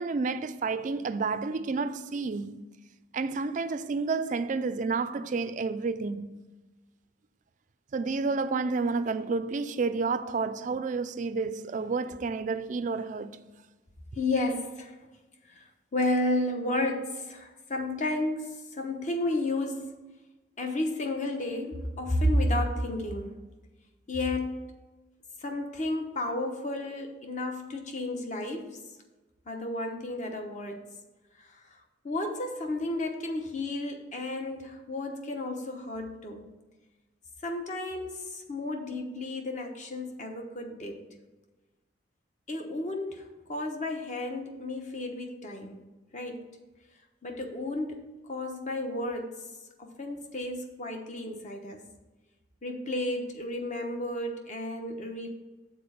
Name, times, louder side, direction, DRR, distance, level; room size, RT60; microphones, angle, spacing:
voice 1, 0.0-2.6 3.1-6.4 7.9-13.5, right 4 dB, 40° right, 0.4 m, -30 dB
voice 2, 14.2-14.9 15.6-15.7 15.9-19.9 20.6-23.3 24.1-24.6 25.4-28.7 29.5-30.8 32.0-36.4 37.4-41.1 42.5-45.8 46.1-46.4 47.2-49.3 49.8-51.8 52.6-55.3, left 1 dB, 40° left, 1.0 m, -32 dB
6.9 x 4.3 x 6.7 m
head